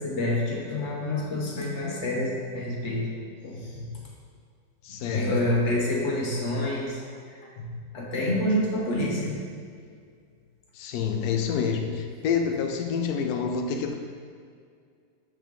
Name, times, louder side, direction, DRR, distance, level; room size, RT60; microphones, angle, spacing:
voice 1, 0.0-3.1 3.4-4.0 5.1-7.0 7.3-9.3, left 1 dB, 50° left, -3 dB, 1.0 m, -28 dB
voice 2, 4.8-5.3 10.7-13.9, left 6 dB, 70° left, 4 dB, 1.0 m, -27 dB
7.4 x 3.6 x 3.6 m, 2.2 s
omnidirectional pair, 1.8 m